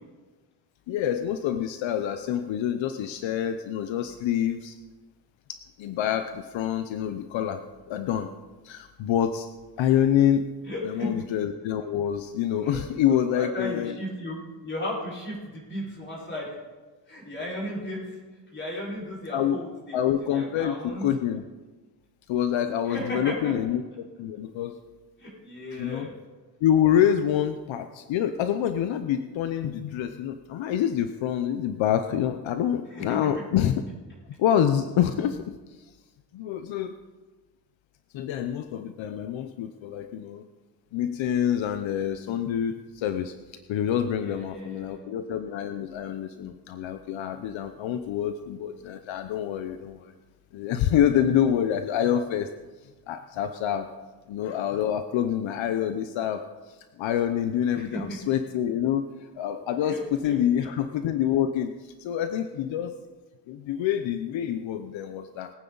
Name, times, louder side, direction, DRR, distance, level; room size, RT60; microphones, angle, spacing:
voice 1, 0.9-4.8 5.5-7.6 7.9-8.3 8.6-9.5 9.8-10.4 10.8-13.9 19.3-19.6 19.9-21.4 22.3-23.8 24.2-24.8 25.8-26.1 26.6-33.8 34.4-35.4 36.3-37.0 38.1-40.4 40.9-43.3 43.7-50.1 50.5-52.5 53.1-53.9 54.3-59.0 59.3-62.9 63.5-65.5, left 10 dB, 75° left, 8 dB, 0.8 m, -26 dB
voice 2, 10.6-11.1 12.6-12.8 13.1-16.6 17.1-18.2 18.5-20.0 20.2-21.1 22.8-23.5 25.2-26.1 32.9-33.2 44.2-45.1 57.7-58.2 59.8-60.7, left 1 dB, 25° left, -5 dB, 5.1 m, -35 dB
21.5 x 9.3 x 4.0 m, 1.3 s
cardioid pair, 150°, 47 cm